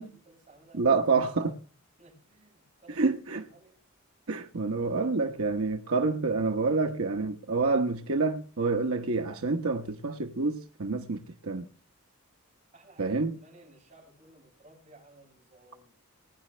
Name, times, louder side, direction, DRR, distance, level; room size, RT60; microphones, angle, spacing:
voice 1, 0.0-0.9 2.0-3.8 12.7-15.9, right 2 dB, 35° right, 7.3 m, -56 dB
voice 2, 0.7-1.6 2.9-3.4 4.3-11.7 13.0-13.4, right 3 dB, 80° right, 1.0 m, -28 dB
21.0 x 10.0 x 3.3 m
head